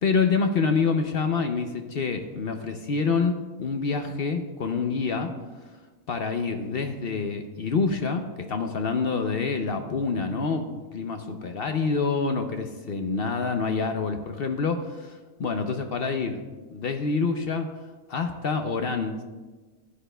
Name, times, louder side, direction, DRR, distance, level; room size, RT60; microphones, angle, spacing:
voice 1, 0.0-5.3 6.1-16.4 16.7-17.7 18.1-19.2, left 4 dB, 55° left, 6 dB, 0.7 m, -27 dB
14.5 x 10.0 x 2.2 m, 1.3 s
omnidirectional pair, 1.4 m